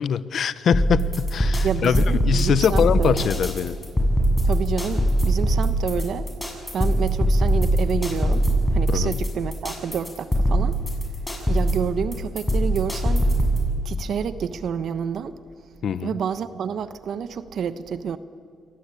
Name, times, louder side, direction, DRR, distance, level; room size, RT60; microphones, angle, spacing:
voice 1, 0.0-3.8 8.9-9.2 15.8-16.1, left 7 dB, 60° left, 15 dB, 1.1 m, -23 dB
sound 1, 0.7-13.7, right 1 dB, 15° left, 7.5 m, -21 dB
voice 2, 1.6-3.3 4.4-6.3 6.7-8.4 8.7-10.8 11.5-13.2 13.8-15.4 16.0-18.2, right 7 dB, 65° right, 12 dB, 1.2 m, -28 dB
28.5 x 23.5 x 8.5 m, 2.3 s
cardioid pair, 90°, 0 cm